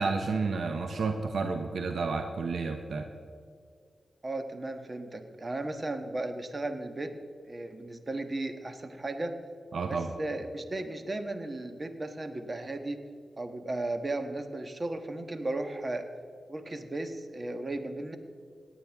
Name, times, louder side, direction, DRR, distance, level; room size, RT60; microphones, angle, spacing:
voice 1, 0.0-3.1 9.7-10.1, right 4 dB, 75° right, 6 dB, 0.8 m, -31 dB
voice 2, 4.2-7.2 7.4-9.3 9.9-13.0 13.4-16.1 16.5-18.2, right 2 dB, 40° right, 7 dB, 1.4 m, -35 dB
18.0 x 9.4 x 3.6 m, 2.2 s
supercardioid pair, 40°, 0 cm